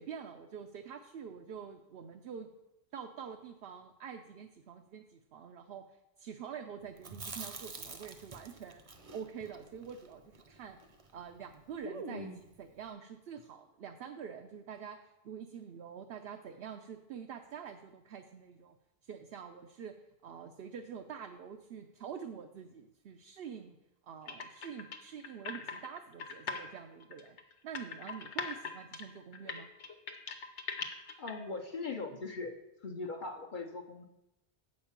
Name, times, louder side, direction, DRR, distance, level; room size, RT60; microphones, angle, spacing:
voice 1, 0.0-2.5 2.9-5.8 6.2-8.8 9.1-10.8 11.1-18.8 19.0-19.9 20.2-23.8 24.0-27.4 27.6-29.7, right 7 dB, 65° right, 5 dB, 0.8 m, -46 dB
Chewing mastication, 7.0-11.2 11.4-11.5 11.8-12.6, right 3 dB, 35° right, 0.8 m, -46 dB
sound 1, 24.3-26.6 27.0-31.3, left 5 dB, 90° left, 1.2 m, -40 dB
voice 2, 31.2-32.5 32.8-34.1, left 3 dB, 50° left, 3 dB, 0.9 m, -40 dB
8.1 x 5.2 x 7.2 m, 0.90 s
omnidirectional pair, 1.1 m